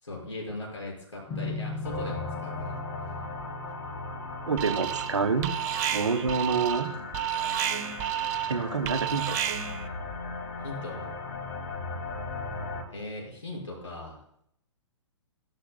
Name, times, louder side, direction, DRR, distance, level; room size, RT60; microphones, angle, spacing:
voice 1, 0.0-3.2 10.6-11.1 12.9-14.2, left 2 dB, 80° left, -2 dB, 5.4 m, -39 dB
sound 1, 1.3-8.5, left 2 dB, 25° left, 1.9 m, -40 dB
sound 2, 1.8-12.8, left 3 dB, 45° left, 2.3 m, -38 dB
voice 2, 4.5-5.5 5.9-6.9 8.5-9.4, right 5 dB, 70° right, 10 dB, 1.1 m, -27 dB
Alarm, 4.6-5.2 5.4-9.9, right 11 dB, 30° right, 0.6 m, -31 dB
16.5 x 13.0 x 2.2 m, 0.71 s
figure-of-eight pair, 115°, 15 cm